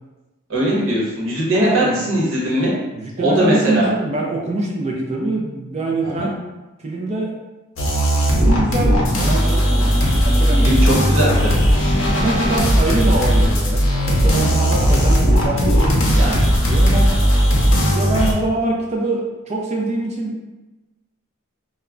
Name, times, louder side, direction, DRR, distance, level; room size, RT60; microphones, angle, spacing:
voice 1, 0.5-2.8 3.2-3.9 6.0-6.3 10.6-11.6 16.2-16.4, right 1 dB, 60° right, -5 dB, 0.9 m, -20 dB
voice 2, 1.5-2.1 3.0-6.3 6.8-7.3 8.4-11.3 12.2-17.1 17.9-20.3, right 2 dB, 30° right, -1 dB, 0.3 m, -24 dB
sound 1, 7.8-18.3, equal, 60° left, 0.6 m, -16 dB
2.2 x 2.1 x 3.6 m, 1.1 s
head